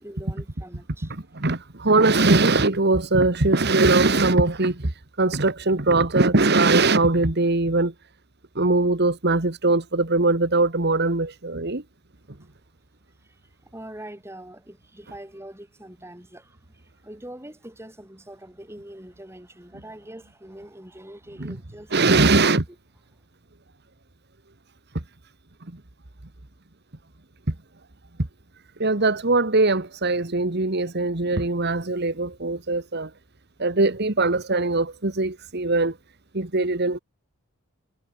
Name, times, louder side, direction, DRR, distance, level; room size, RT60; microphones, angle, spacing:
voice 1, 0.0-1.1 13.6-22.4, right 1 dB, 10° right, 5.3 m, -43 dB
voice 2, 1.1-4.9 5.2-7.9 8.5-11.8 21.4-21.6 21.9-22.6 28.8-33.1 33.6-35.9 36.3-37.0, right 3 dB, 50° right, 1.7 m, -21 dB
head